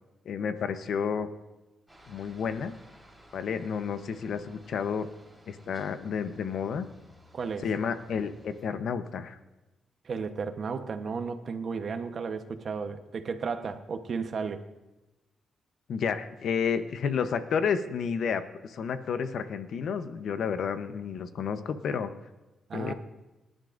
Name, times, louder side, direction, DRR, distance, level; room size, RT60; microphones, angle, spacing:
voice 1, 0.3-1.3 2.1-2.7 3.3-5.1 5.5-6.9 7.6-9.4 15.9-22.1 22.7-22.9, left 6 dB, 70° left, 10 dB, 0.8 m, -31 dB
Aircraft, 1.9-8.7, equal, ahead, 4.3 m, -57 dB
voice 2, 7.3-7.6 10.0-14.6 22.7-22.9, right 5 dB, 50° right, 8 dB, 1.0 m, -34 dB
24.0 x 11.0 x 2.6 m, 1.1 s
cardioid pair, 100°, 0 cm